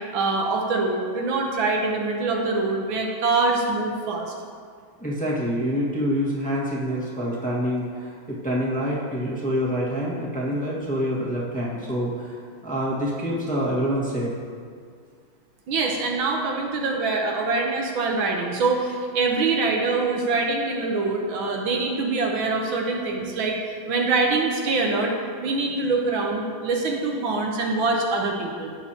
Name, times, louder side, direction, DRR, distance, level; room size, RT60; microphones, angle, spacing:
voice 1, 0.1-4.3 15.7-23.6 23.9-25.1 25.4-28.7, right 3 dB, 70° right, 0 dB, 1.7 m, -24 dB
voice 2, 5.0-12.3 12.6-14.3, equal, 5° left, -6 dB, 1.3 m, -26 dB
16.5 x 6.3 x 2.9 m, 2.1 s
omnidirectional pair, 2.3 m